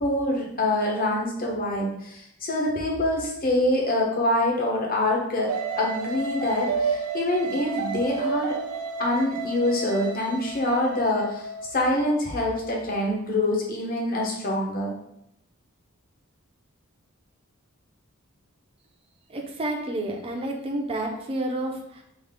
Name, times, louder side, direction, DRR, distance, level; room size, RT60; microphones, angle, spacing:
voice 1, 0.0-5.5 5.8-8.5 9.0-14.9, left 1 dB, 40° left, -1 dB, 0.8 m, -25 dB
sound 1, 5.5-11.8, right 4 dB, 80° right, 0.5 m, -31 dB
voice 2, 19.3-22.0, right 1 dB, 25° right, 2 dB, 0.5 m, -30 dB
3.4 x 2.4 x 3.6 m, 0.77 s
head